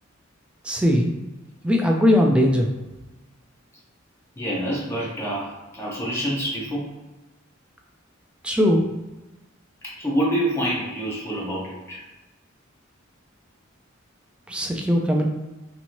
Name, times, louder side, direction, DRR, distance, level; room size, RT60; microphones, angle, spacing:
voice 1, 0.6-1.1 1.6-2.7 8.4-8.9 14.5-15.3, left 1 dB, 5° right, 0 dB, 0.3 m, -19 dB
voice 2, 4.4-6.9 9.8-12.0, equal, 15° left, -6 dB, 0.7 m, -27 dB
3.0 x 2.9 x 2.6 m, 1.1 s
head